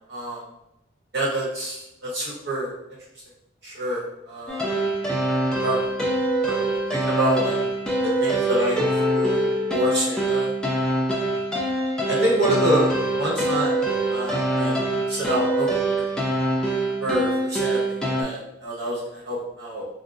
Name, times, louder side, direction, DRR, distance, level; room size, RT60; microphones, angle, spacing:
voice 1, 0.1-0.4 1.1-2.7 3.6-4.8 5.6-5.8 6.5-6.6 6.9-7.6 8.0-9.4 9.7-10.5 12.1-13.8 14.1-14.8 15.1-15.7 17.0-19.8, right 1 dB, 60° right, -5 dB, 1.0 m, -26 dB
sound 1, 4.5-18.2, right 1 dB, 5° left, 0.3 m, -24 dB
3.5 x 2.0 x 2.5 m, 0.87 s
head